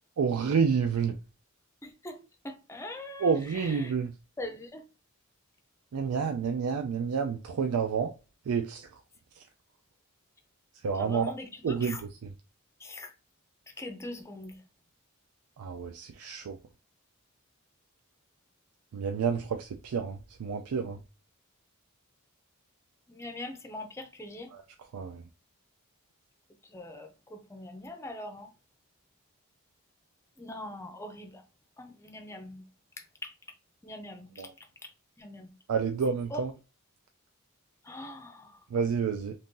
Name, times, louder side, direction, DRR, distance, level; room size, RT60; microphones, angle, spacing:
voice 1, 0.2-1.2 3.2-4.1 5.9-8.1 8.5-8.9 9.4-9.5 10.8-11.3 11.6-12.0 15.6-16.6 18.9-21.0 24.5-24.6 24.9-25.2 34.4-34.5 35.7-36.5 38.7-39.3, right 6 dB, 75° right, 0.4 m, -29 dB
voice 2, 1.8-3.9 4.4-4.8 10.9-12.0 12.8-13.1 13.8-14.6 23.1-24.5 26.6-28.5 30.4-31.4 31.8-32.6 33.0-33.3 33.8-34.5 34.8-34.9 35.2-35.5 36.3-36.4 37.8-38.6, left 1 dB, 10° left, 0.5 m, -42 dB
2.6 x 2.6 x 3.7 m
head